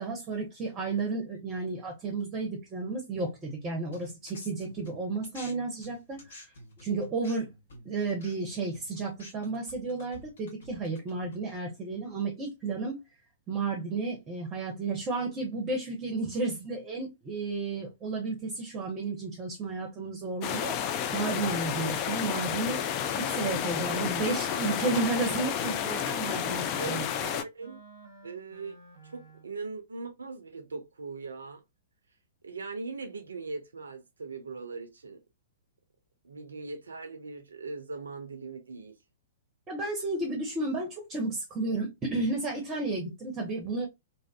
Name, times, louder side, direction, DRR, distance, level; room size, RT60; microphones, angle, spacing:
voice 1, 0.0-6.5 6.8-7.5 7.8-13.0 13.5-20.8 21.1-22.8 23.2-27.1 39.7-43.9, right 3 dB, 20° right, 0.7 m, -32 dB
sound 1, 3.9-5.5 5.8-11.6, left 1 dB, 60° left, 1.1 m, -49 dB
sound 2, 20.4-27.4, left 9 dB, 35° left, 0.3 m, -31 dB
Wind instrument woodwind instrument, 22.3-23.4 23.7-23.9 24.2-29.5, right 3 dB, 80° left, 1.6 m, -49 dB
voice 2, 26.8-27.8 28.2-28.8 29.0-31.6 32.4-35.2 36.2-38.9, right 4 dB, 70° right, 0.4 m, -40 dB
2.6 x 2.4 x 2.2 m
figure-of-eight pair, 110°, 0 cm